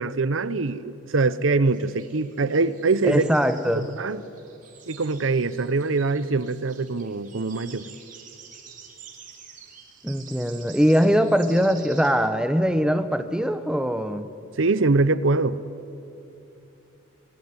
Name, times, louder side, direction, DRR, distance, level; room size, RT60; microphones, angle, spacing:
voice 1, 0.0-3.3 3.7-4.2 4.9-7.9 14.6-15.6, right 3 dB, 70° right, 0.8 m, -23 dB
sound 1, 1.6-12.1, right 7 dB, 40° right, 3.1 m, -48 dB
voice 2, 3.0-3.8 10.0-14.3, equal, 5° right, 0.8 m, -22 dB
26.0 x 20.5 x 9.7 m
head